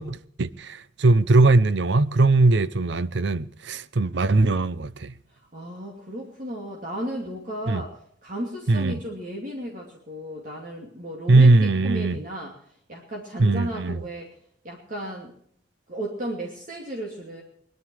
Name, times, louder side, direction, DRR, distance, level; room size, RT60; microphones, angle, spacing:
voice 1, 0.0-5.1 7.7-7.8 8.7-9.0 11.3-12.2 13.4-14.0, right 2 dB, 70° right, 0.6 m, -20 dB
voice 2, 5.3-12.6 12.9-14.4 14.6-15.3 15.9-17.4, right 1 dB, 45° right, 2.7 m, -34 dB
21.5 x 11.5 x 4.7 m
head